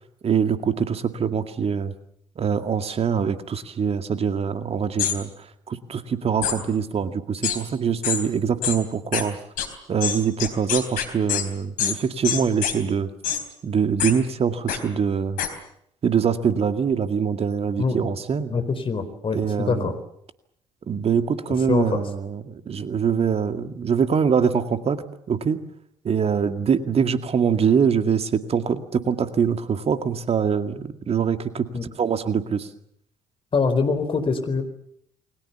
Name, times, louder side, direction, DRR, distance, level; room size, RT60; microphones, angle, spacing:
voice 1, 0.2-1.9 2.4-9.4 9.9-13.1 13.6-15.4 16.0-18.5 19.3-19.9 20.9-25.6 26.0-31.7 32.0-32.7, right 7 dB, 40° right, 9 dB, 2.1 m, -24 dB
sound 1, 5.0-5.2 6.4-6.6 7.4-7.6 8.0-8.2 8.6-8.8 9.1-9.2 9.6-9.7 10.0-11.4 11.8-12.0 12.2-12.7 13.2-13.4 14.0-14.1 14.7-14.8 15.4-15.5, left 9 dB, 60° left, 3.8 m, -24 dB
voice 2, 18.5-19.9 21.7-22.0 31.7-31.8 33.5-34.6, left 4 dB, 35° left, 9 dB, 4.3 m, -24 dB
29.5 x 22.0 x 7.1 m, 0.72 s
figure-of-eight pair, 50°, 16 cm